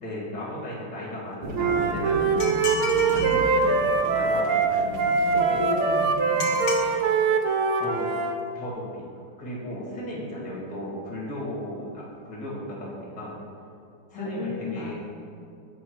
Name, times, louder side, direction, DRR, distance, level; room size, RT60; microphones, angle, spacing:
voice 1, 0.0-2.2 3.1-4.9 5.3-5.7 7.8-8.1 8.5-9.1 9.4-13.4 14.1-14.9, equal, 20° left, -5 dB, 1.6 m, -35 dB
sound 1, 1.4-7.0, equal, 65° right, 1.4 m, -37 dB
Wind instrument woodwind instrument, 1.5-8.4, right 4 dB, 90° right, 1.5 m, -23 dB
voice 2, 2.3-2.7 5.2-6.6 14.1-14.9, left 2 dB, 80° left, 0 dB, 1.5 m, -34 dB
sound 2, 2.4-3.4 6.4-6.9, left 5 dB, 65° left, 1.2 m, -32 dB
7.2 x 3.5 x 6.0 m, 2.5 s
omnidirectional pair, 2.3 m